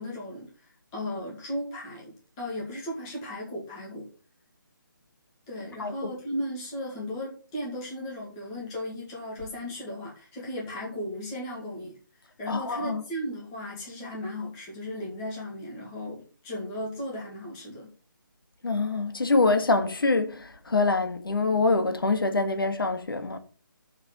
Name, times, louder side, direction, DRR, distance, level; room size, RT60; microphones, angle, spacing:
voice 1, 0.0-4.1 5.5-17.9, left 1 dB, 10° left, 2.0 m, -36 dB
voice 2, 5.8-6.1 12.5-13.0 18.6-23.4, left 3 dB, 85° left, 1.9 m, -25 dB
7.0 x 6.6 x 6.6 m
hypercardioid pair, 180°, 11 cm